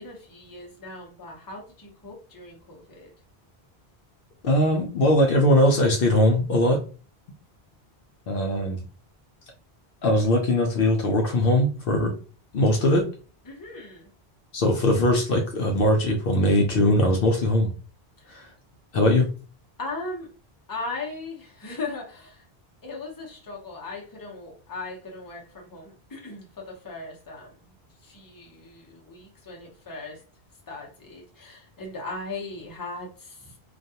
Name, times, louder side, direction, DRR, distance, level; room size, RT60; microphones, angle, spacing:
voice 1, 0.0-3.1 13.5-14.1 18.2-18.4 19.8-20.3 20.7-22.4 22.8-27.7 28.0-30.2 30.7-33.6, left 3 dB, 25° left, -1 dB, 0.7 m, -38 dB
voice 2, 4.4-6.8 8.3-8.8 10.0-12.1 12.5-13.1 14.5-17.7 18.3-18.5 18.9-19.3, left 1 dB, 65° left, 2 dB, 0.7 m, -21 dB
2.4 x 2.2 x 2.7 m, 0.36 s
omnidirectional pair, 1.1 m